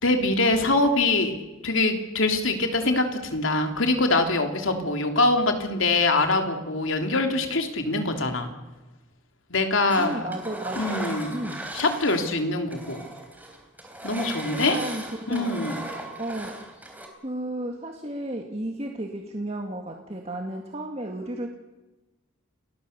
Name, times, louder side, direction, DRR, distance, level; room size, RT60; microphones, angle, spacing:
voice 1, 0.0-1.3 1.6-8.5 9.5-10.3 10.7-11.4 11.7-13.0 14.0-14.8 15.3-15.8, left 2 dB, 75° left, 5 dB, 3.2 m, -24 dB
Engine, 9.9-12.4 12.7-17.1, right 1 dB, 10° right, 3.5 m, -37 dB
voice 2, 10.0-10.8 11.3-11.6 14.5-15.6 16.2-16.5 17.2-21.5, right 1 dB, 30° right, 2 dB, 1.9 m, -33 dB
29.5 x 20.5 x 6.8 m, 1.1 s
head